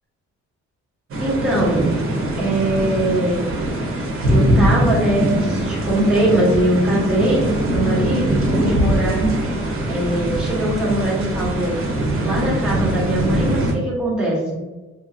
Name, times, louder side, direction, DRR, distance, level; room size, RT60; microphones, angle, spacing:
sound 1, 1.1-13.7, right 1 dB, 45° right, 0.9 m, -21 dB
voice 1, 1.2-1.9 2.4-3.4 4.3-9.2 9.9-11.8 12.2-14.6, right 1 dB, 5° right, -7 dB, 1.1 m, -21 dB
2.8 x 2.5 x 2.6 m, 1.2 s
cardioid pair, 90°, 30 cm